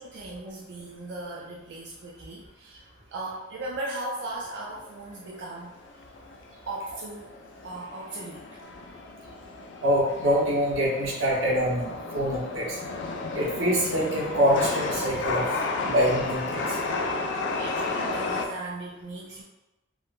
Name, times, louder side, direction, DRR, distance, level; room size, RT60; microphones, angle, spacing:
voice 1, 0.0-5.7 6.7-7.3 7.6-8.6 17.6-19.4, right 2 dB, 60° right, -3 dB, 0.3 m, -37 dB
Chatter / Subway metro underground, 4.2-18.5, left 3 dB, 60° left, 0.3 m, -33 dB
voice 2, 9.8-12.8 13.3-15.4 15.8-16.8, equal, 85° right, -4 dB, 0.8 m, -25 dB
3.6 x 2.1 x 2.4 m, 1.0 s
head